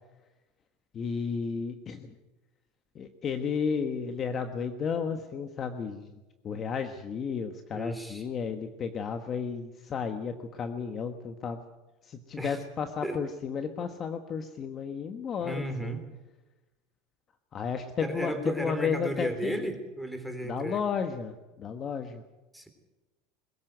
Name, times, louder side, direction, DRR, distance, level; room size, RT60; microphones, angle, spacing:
voice 1, 0.9-2.1 2.9-6.1 6.4-11.6 12.0-16.0 17.5-19.6 20.4-22.2, left 6 dB, 30° left, 7 dB, 1.3 m, -33 dB
voice 2, 7.7-8.2 12.4-12.6 13.0-13.2 15.4-16.0 18.0-20.8 22.5-22.7, right 1 dB, ahead, 8 dB, 3.3 m, -34 dB
22.0 x 14.5 x 9.2 m, 1.1 s
supercardioid pair, 140°, 0 cm